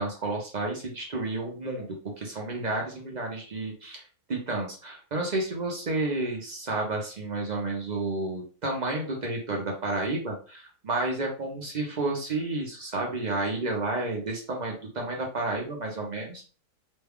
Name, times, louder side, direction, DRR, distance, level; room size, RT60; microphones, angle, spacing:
voice 1, 0.0-1.9 2.2-4.0 4.3-16.4, right 2 dB, 45° right, 0 dB, 0.6 m, -31 dB
3.1 x 2.2 x 3.5 m, 0.38 s
omnidirectional pair, 1.6 m